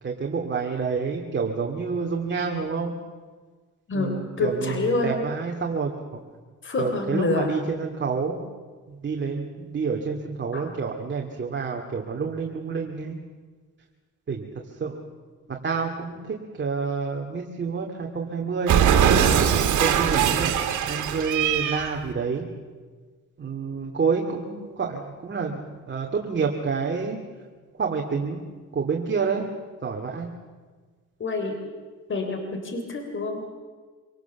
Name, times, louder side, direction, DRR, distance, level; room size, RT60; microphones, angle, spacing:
voice 1, 0.0-2.9 3.9-6.2 6.8-8.5 8.9-13.2 14.3-15.0 15.5-19.0 19.8-20.6 20.8-22.4 23.4-27.2 27.8-28.4 28.7-29.5 29.8-30.3, right 5 dB, 40° right, 1 dB, 2.4 m, -28 dB
voice 2, 3.9-5.2 6.6-7.6 10.5-10.7 31.2-31.6 32.1-33.5, left 2 dB, 40° left, 5 dB, 3.6 m, -27 dB
Cat, 18.7-22.0, right 8 dB, 75° right, 2.4 m, -21 dB
26.0 x 18.0 x 7.1 m, 1.4 s
cardioid pair, 90°, 30 cm